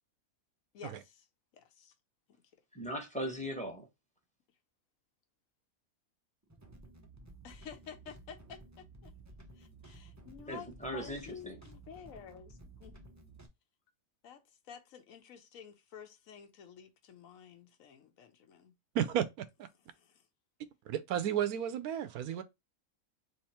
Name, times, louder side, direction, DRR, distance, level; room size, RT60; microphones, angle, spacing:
voice 1, 0.7-1.3 1.5-1.9 2.3-2.4 7.4-9.1 9.6-10.7 10.9-13.0 14.2-18.7 19.9-20.3 22.3-22.4, left 7 dB, 70° left, 1.2 m, -51 dB
voice 2, 2.7-3.9 10.5-11.6, equal, 5° left, 1.0 m, -39 dB
sound 1, 6.4-13.5, right 2 dB, 25° right, 0.4 m, -54 dB
voice 3, 18.9-19.7 20.9-22.4, right 10 dB, 85° right, 1.1 m, -33 dB
3.5 x 3.0 x 4.2 m
omnidirectional pair, 1.5 m